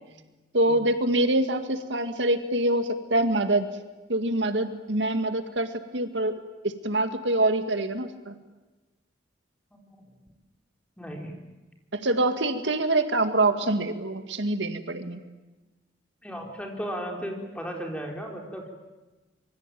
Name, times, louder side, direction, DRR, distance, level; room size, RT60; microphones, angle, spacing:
voice 1, 0.5-3.7 4.1-8.4 11.9-15.2, right 1 dB, 75° right, 8 dB, 2.0 m, -25 dB
voice 2, 9.7-10.2 11.0-11.3 16.2-18.7, equal, 5° left, 1 dB, 4.3 m, -36 dB
26.0 x 23.0 x 9.2 m, 1.1 s
head